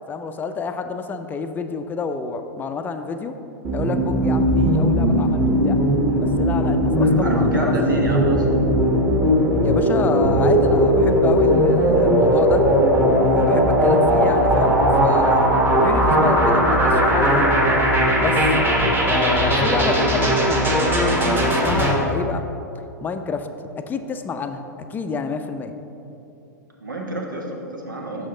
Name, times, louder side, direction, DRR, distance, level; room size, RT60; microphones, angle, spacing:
voice 1, 0.1-3.3 3.7-5.8 6.2-7.7 9.6-12.7 13.2-17.5 18.2-18.5 19.1-22.4 23.0-23.5 23.8-24.6 24.9-25.7, left 4 dB, 20° left, 8 dB, 0.4 m, -28 dB
sound 1, 3.6-21.9, equal, 20° right, 1.3 m, -18 dB
voice 2, 7.0-8.6 26.8-28.3, right 1 dB, 90° right, 0 dB, 1.2 m, -28 dB
6.3 x 6.2 x 3.8 m, 2.8 s
hypercardioid pair, 105°, 10 cm